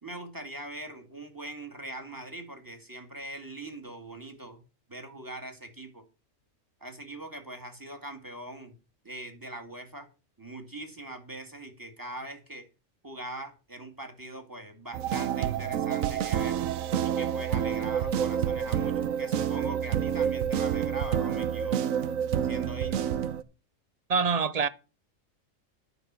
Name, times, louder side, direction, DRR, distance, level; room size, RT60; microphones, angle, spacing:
voice 1, 0.0-4.6 4.9-6.0 6.8-8.8 9.0-10.1 10.4-12.7 13.0-16.6 17.0-21.9 22.4-23.1, right 1 dB, 15° right, 2.0 m, -42 dB
sound 1, 14.9-23.4, right 9 dB, 80° right, 1.2 m, -28 dB
voice 2, 24.1-24.7, right 5 dB, 45° right, 0.5 m, -25 dB
11.0 x 5.9 x 7.4 m
omnidirectional pair, 1.4 m